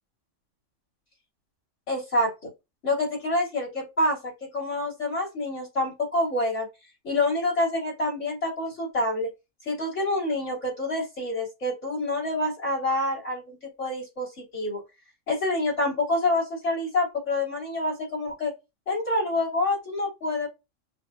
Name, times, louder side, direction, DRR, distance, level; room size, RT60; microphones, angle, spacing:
voice 1, 1.9-2.5 2.8-6.7 7.0-9.3 9.6-14.8 15.3-18.5 18.9-20.5, left 2 dB, 65° left, -3 dB, 3.5 m, -27 dB
6.3 x 2.6 x 2.6 m, 0.24 s
omnidirectional pair, 1.3 m